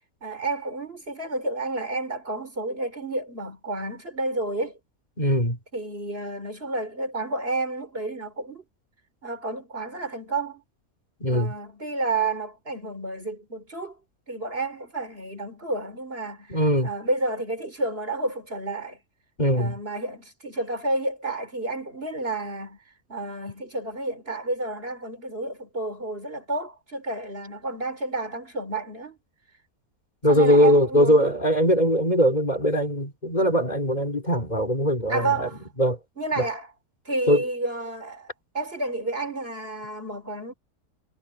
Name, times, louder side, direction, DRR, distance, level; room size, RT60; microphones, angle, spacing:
voice 1, 0.2-4.8 5.7-8.6 9.2-10.6 11.3-14.0 14.3-19.0 19.5-22.8 23.1-29.2 30.3-31.3 35.1-35.6 36.2-36.7 37.1-40.5, right 2 dB, 40° right, 4.2 m, -30 dB
voice 2, 5.2-5.6 11.2-11.5 16.5-16.9 19.4-19.8 30.2-35.5 35.8-36.0 36.4-36.5 37.3-37.4, equal, 30° left, 3.8 m, -21 dB
omnidirectional pair, 1.5 m